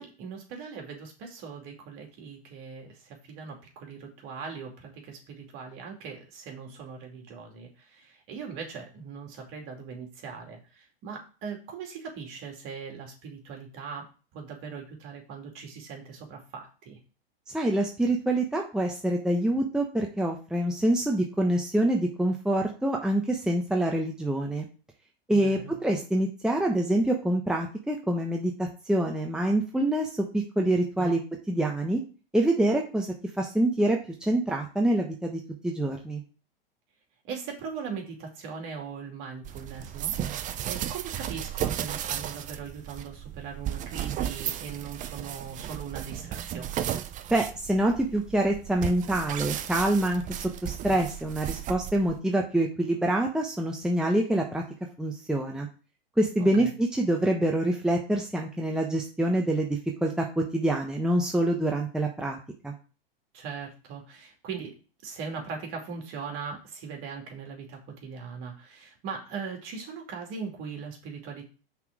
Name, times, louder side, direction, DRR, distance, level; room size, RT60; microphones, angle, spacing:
voice 1, 0.0-14.1 14.3-17.0 25.3-25.7 31.0-31.2 37.2-46.9 56.4-56.7 63.3-64.7 65.0-71.4, right 5 dB, 45° right, 2 dB, 2.7 m, -40 dB
voice 2, 17.5-24.7 25.3-30.1 30.3-31.2 31.5-32.0 32.3-33.1 33.4-36.2 47.3-54.6 55.0-55.7 56.2-62.4 62.6-62.7, right 1 dB, ahead, 1 dB, 1.0 m, -26 dB
sound 1, 39.4-52.2, right 11 dB, 25° right, 0.6 m, -34 dB
5.8 x 4.1 x 6.1 m, 0.34 s
hypercardioid pair, 105°, 29 cm